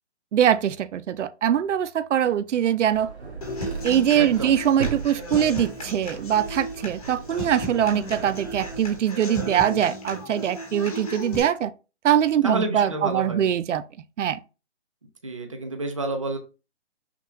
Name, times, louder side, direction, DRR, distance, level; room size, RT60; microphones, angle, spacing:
voice 1, 0.3-3.1 3.8-11.7 12.0-13.8 14.2-14.4, right 10 dB, 90° right, 0.5 m, -22 dB
sound 1, 2.9-9.0, right 4 dB, 65° right, 1.6 m, -38 dB
Human voice / Acoustic guitar, 3.4-11.4, equal, 35° left, 1.0 m, -35 dB
voice 2, 4.1-4.5 12.4-13.4 15.2-16.4, right 2 dB, 30° right, 0.5 m, -29 dB
5.9 x 2.3 x 2.9 m
hypercardioid pair, 175°, 35 cm